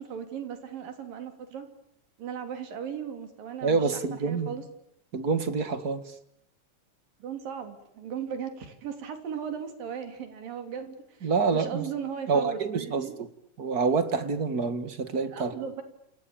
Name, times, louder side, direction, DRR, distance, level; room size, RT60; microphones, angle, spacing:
voice 1, 0.0-1.7 2.2-4.6 7.2-13.2 15.3-15.8, right 7 dB, 85° right, 7 dB, 5.1 m, -37 dB
voice 2, 3.6-4.5 5.1-6.0 11.2-11.8 12.3-13.1 13.6-15.5, right 4 dB, 35° right, 11 dB, 1.9 m, -27 dB
29.5 x 28.5 x 7.2 m, 0.76 s
omnidirectional pair, 3.9 m